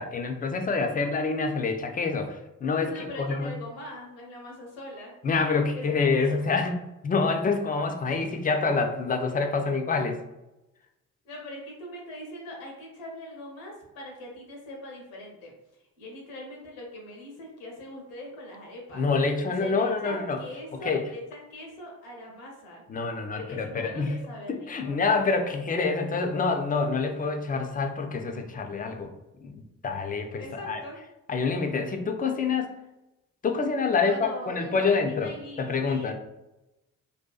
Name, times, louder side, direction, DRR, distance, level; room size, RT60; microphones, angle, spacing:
voice 1, 0.0-3.6 5.2-10.2 18.9-20.4 20.9-21.0 22.9-24.2 24.5-29.1 29.4-30.8 31.3-32.7 33.4-35.3 35.6-36.1, left 4 dB, 20° left, 5 dB, 0.3 m, -27 dB
voice 2, 2.8-5.1 5.7-6.1 11.2-15.5 16.0-19.0 19.4-22.8 23.3-25.0 30.4-31.0 34.0-36.1, left 1 dB, 85° left, -1 dB, 0.7 m, -42 dB
2.5 x 2.2 x 2.2 m, 0.97 s
hypercardioid pair, 40°, 42 cm